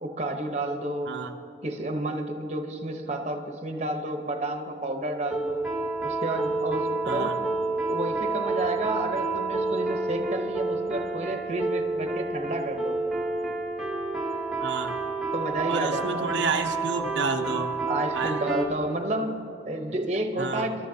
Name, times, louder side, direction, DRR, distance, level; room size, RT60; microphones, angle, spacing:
voice 1, 0.0-1.1 1.6-5.6 6.0-7.4 7.8-13.0 15.3-16.3 17.9-20.9, right 1 dB, 35° right, 4 dB, 0.9 m, -31 dB
sound 1, 5.3-18.7, right 3 dB, ahead, 1.0 m, -29 dB
voice 2, 7.0-7.4 14.6-15.0 15.7-17.7 18.2-18.4 20.4-20.7, right 4 dB, 80° right, 4 dB, 0.7 m, -30 dB
21.0 x 12.5 x 2.8 m, 2.9 s
head